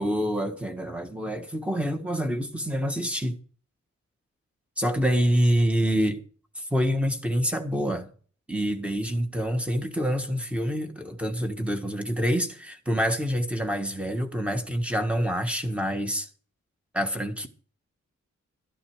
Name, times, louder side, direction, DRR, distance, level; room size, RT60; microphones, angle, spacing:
voice 1, 0.0-3.4 4.8-6.2 6.6-8.1 8.5-16.3 16.9-17.5, equal, 5° right, 1.6 m, -26 dB
13.5 x 11.0 x 4.9 m
wide cardioid pair, 180°, 29 cm